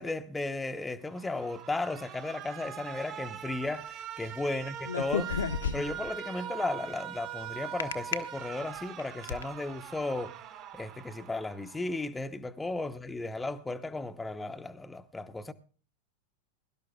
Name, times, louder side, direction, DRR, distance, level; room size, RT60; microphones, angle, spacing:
voice 1, 0.0-5.4 5.7-10.3 10.7-15.5, left 2 dB, 10° left, 0.8 m, -35 dB
Alarm, 1.1-12.1, right 10 dB, 35° right, 1.3 m, -42 dB
sound 1, 4.9-6.1 7.8-8.2 8.8-9.4, left 6 dB, 70° left, 1.0 m, -31 dB
23.0 x 12.0 x 2.3 m
figure-of-eight pair, 90°, 0 cm